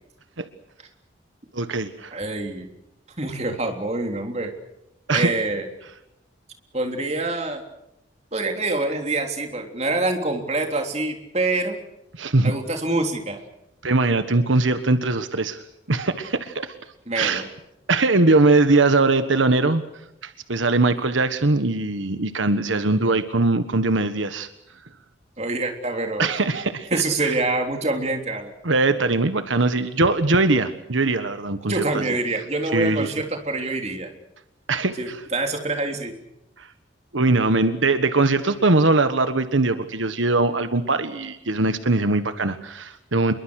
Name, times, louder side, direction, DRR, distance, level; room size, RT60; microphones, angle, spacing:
voice 1, 1.5-2.2 5.1-5.3 12.2-12.5 13.8-16.7 17.1-17.4 17.9-19.8 20.2-24.5 26.2-27.3 28.6-32.0 32.7-33.1 34.7-35.2 36.6-36.7 37.1-43.3, right 2 dB, 85° right, 10 dB, 1.5 m, -21 dB
voice 2, 2.1-2.7 3.2-4.5 5.1-5.7 6.7-7.6 8.3-11.8 12.4-13.4 17.1-17.4 25.4-26.3 26.9-28.5 31.7-34.1 35.0-36.2, right 2 dB, 35° right, 4 dB, 3.6 m, -26 dB
27.5 x 22.5 x 6.5 m, 0.85 s
head